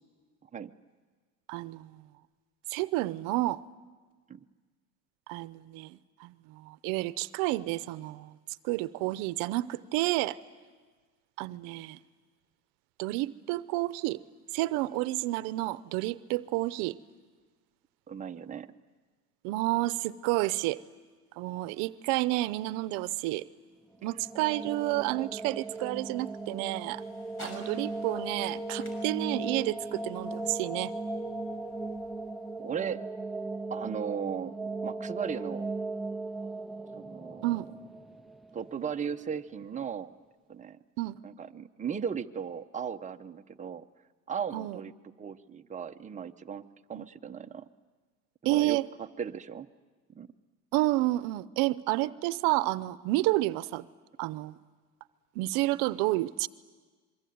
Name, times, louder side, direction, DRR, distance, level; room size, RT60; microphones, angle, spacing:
voice 1, 1.5-2.0 2.7-3.6 5.3-8.3 8.6-10.4 11.4-12.0 13.0-14.2 14.5-17.0 19.4-20.8 21.4-23.4 24.0-27.0 27.4-30.9 37.4-37.7 41.0-41.2 44.5-44.8 46.9-47.1 48.4-48.9 50.7-53.9 54.2-54.6 55.3-56.5, right 18 dB, 90° right, 16 dB, 0.8 m, -30 dB
voice 2, 18.1-18.7 32.6-33.0 33.7-34.5 34.8-35.7 36.9-37.6 38.5-40.1 40.5-40.8 41.2-43.9 44.3-47.6 48.4-49.7 50.1-50.3, right 7 dB, 25° right, 6 dB, 1.0 m, -37 dB
sound 1, 23.9-38.9, right 2 dB, ahead, 0.7 m, -37 dB
sound 2, 24.4-32.6, left 1 dB, 40° left, 6.8 m, -54 dB
26.5 x 23.0 x 9.4 m, 1.4 s
cardioid pair, 110°, 32 cm